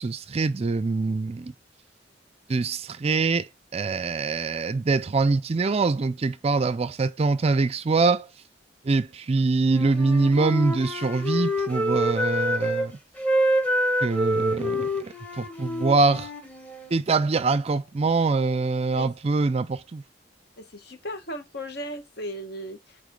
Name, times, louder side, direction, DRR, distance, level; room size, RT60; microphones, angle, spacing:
voice 1, 0.0-1.5 2.5-3.5 3.7-8.3 8.9-12.9 14.0-16.3 16.9-20.0, right 3 dB, 30° right, 0.4 m, -24 dB
Wind instrument woodwind instrument, 9.6-12.9 13.2-16.9, equal, 10° left, 1.4 m, -27 dB
voice 2, 20.6-23.0, equal, 55° left, 1.4 m, -36 dB
8.3 x 3.5 x 3.8 m
head